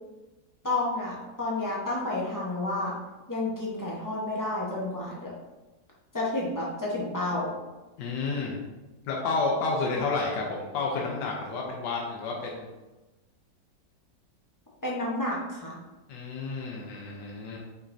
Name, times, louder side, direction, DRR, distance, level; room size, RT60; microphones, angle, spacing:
voice 1, 0.6-2.9 3.3-5.3 6.1-7.5 10.0-10.1 14.8-15.8, left 2 dB, 20° left, -5 dB, 0.5 m, -30 dB
voice 2, 8.0-8.6 9.1-12.7 16.1-17.6, left 3 dB, 75° left, -2 dB, 1.3 m, -30 dB
5.4 x 3.5 x 2.6 m, 1.1 s
omnidirectional pair, 2.0 m